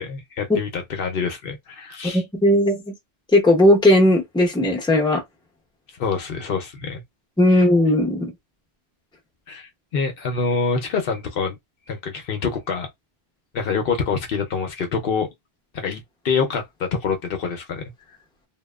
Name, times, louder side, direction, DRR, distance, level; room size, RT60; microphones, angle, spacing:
voice 1, 0.0-2.2 6.0-7.0 7.5-7.6 9.5-11.6 11.9-12.9 13.5-15.3 15.7-17.8, left 5 dB, 70° left, 0.8 m, -26 dB
voice 2, 2.1-2.9 3.3-5.2 7.4-8.3, left 1 dB, 5° left, 0.7 m, -17 dB
2.8 x 2.0 x 2.2 m
omnidirectional pair, 1.0 m